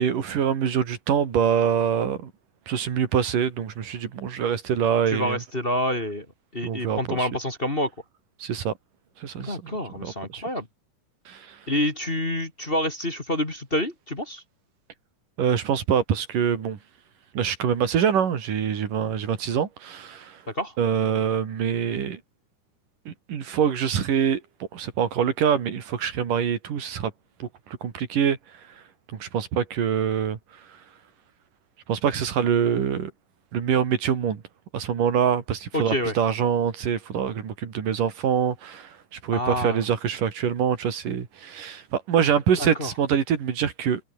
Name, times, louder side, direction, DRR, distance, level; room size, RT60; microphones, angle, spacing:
voice 1, 0.0-2.3 2.7-5.4 6.6-7.3 8.4-8.7 9.2-9.7 10.0-10.4 11.3-11.7 15.4-16.8 17.3-20.4 20.8-22.2 23.1-24.4 24.7-27.1 27.4-28.8 29.1-30.8 31.9-33.1 33.5-34.4 34.7-44.0, right 8 dB, 90° right, 4.3 m, -25 dB
voice 2, 5.1-6.3 6.5-7.9 9.4-10.7 11.7-14.4 20.5-20.7 35.7-36.1 39.3-39.8 42.6-42.9, left 1 dB, 20° left, 2.5 m, -27 dB
omnidirectional pair, 3.6 m